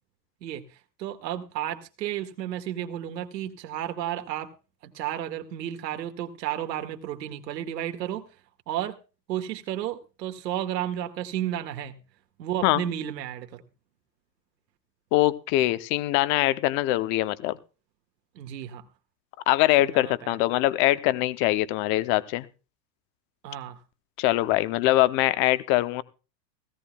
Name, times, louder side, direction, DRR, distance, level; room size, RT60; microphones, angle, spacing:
voice 1, 1.0-4.5 4.8-8.2 8.7-9.0 9.3-12.0 12.4-13.6 18.4-18.9 19.8-20.4 23.4-23.8, right 11 dB, 80° right, 6 dB, 2.0 m, -32 dB
voice 2, 15.1-17.6 19.5-22.5 24.2-26.0, left 16 dB, 25° left, 15 dB, 0.6 m, -23 dB
17.0 x 16.0 x 2.3 m, 0.33 s
supercardioid pair, 160°, 50 cm